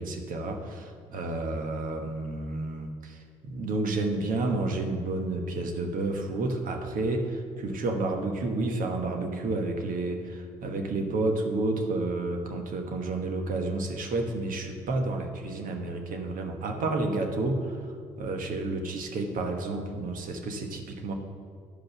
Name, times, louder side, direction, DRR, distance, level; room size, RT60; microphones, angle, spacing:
voice 1, 0.0-17.9 18.2-21.1, right 2 dB, 60° right, 3 dB, 1.4 m, -30 dB
10.5 x 5.2 x 5.9 m, 2.2 s
hypercardioid pair, 50°, 16 cm